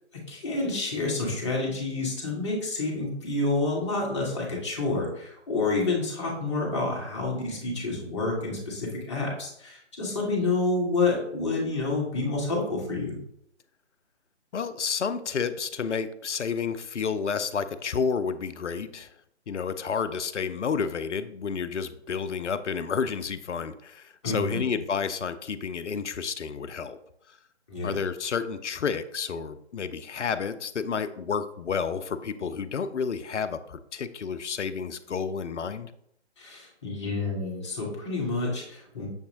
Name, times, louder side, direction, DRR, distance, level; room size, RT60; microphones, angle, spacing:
voice 1, 0.1-13.2 24.2-24.6 27.7-28.0 36.4-39.1, left 3 dB, 25° left, -2 dB, 1.0 m, -29 dB
voice 2, 14.5-19.1 19.5-27.0 27.8-35.9, left 6 dB, 80° left, 12 dB, 0.5 m, -30 dB
6.4 x 2.7 x 2.8 m, 0.73 s
figure-of-eight pair, 145°, 35 cm